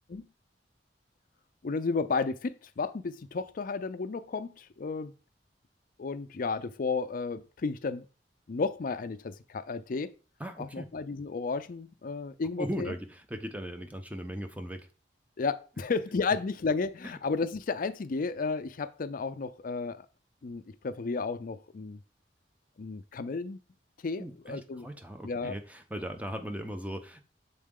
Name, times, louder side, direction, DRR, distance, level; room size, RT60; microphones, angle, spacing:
voice 1, 1.6-5.1 6.0-8.1 8.5-10.1 10.6-12.9 15.4-20.0 20.4-22.0 22.8-23.6 24.0-24.9 25.2-25.6, left 4 dB, 50° left, 0.5 m, -33 dB
voice 2, 10.4-10.9 12.6-14.9 24.2-27.2, equal, 10° right, 0.7 m, -38 dB
7.3 x 3.9 x 3.7 m
head